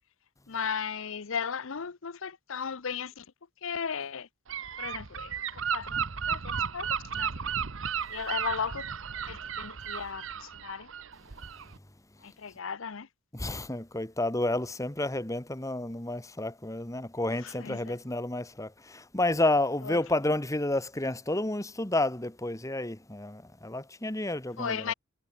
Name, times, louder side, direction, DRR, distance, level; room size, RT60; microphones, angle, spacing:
voice 1, 0.5-3.3 3.6-4.3 4.8-7.5 8.1-8.9 9.3-10.9 12.2-13.1 17.4-18.0 19.8-20.0 24.6-24.9, left 6 dB, 65° left, 0.7 m, -36 dB
Gull seagull / Wind, 4.5-11.8, right 7 dB, 65° right, 1.0 m, -34 dB
voice 2, 13.3-24.9, left 2 dB, 15° left, 1.5 m, -30 dB
head